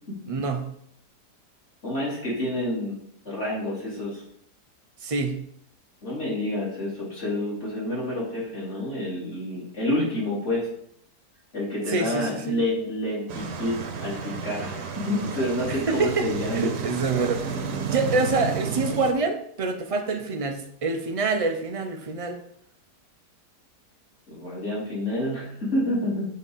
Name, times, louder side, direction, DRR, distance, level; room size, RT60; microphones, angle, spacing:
voice 1, 0.3-0.7 5.0-5.5 11.9-12.6 15.7-16.3 16.5-22.4, right 3 dB, 45° right, 5 dB, 0.4 m, -26 dB
voice 2, 1.8-3.0 3.3-4.2 6.0-10.7 11.5-16.7 24.3-26.3, left 1 dB, 40° left, -7 dB, 3.8 m, -28 dB
sound 1, 13.3-19.1, right 6 dB, 75° right, 1.5 m, -32 dB
7.4 x 4.2 x 5.6 m, 0.68 s
omnidirectional pair, 1.8 m